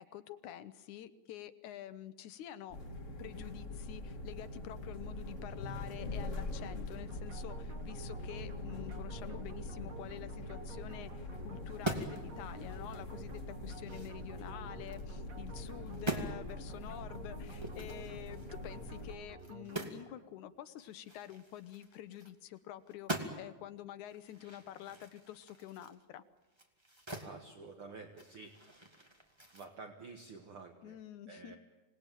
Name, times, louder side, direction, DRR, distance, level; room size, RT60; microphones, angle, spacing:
voice 1, 0.0-2.8 3.2-26.2 30.8-31.6, left 12 dB, 80° left, 12 dB, 2.3 m, -48 dB
sound 1, 2.7-19.2, left 2 dB, 30° left, 2.0 m, -43 dB
sound 2, 7.1-20.4, right 4 dB, 80° right, 0.7 m, -53 dB
sound 3, 11.6-12.3 12.7-12.8 13.3-15.0 15.5-15.7 15.9-16.3 17.5-20.1 20.3-20.4 20.8-22.6 22.9-23.6 24.1-27.3 27.7-29.7, right 1 dB, 10° right, 1.8 m, -43 dB
voice 2, 27.2-28.5 29.5-31.0 31.3-31.6, right 4 dB, 50° right, 4 dB, 2.1 m, -50 dB
26.5 x 19.0 x 9.1 m, 1.2 s
omnidirectional pair, 3.5 m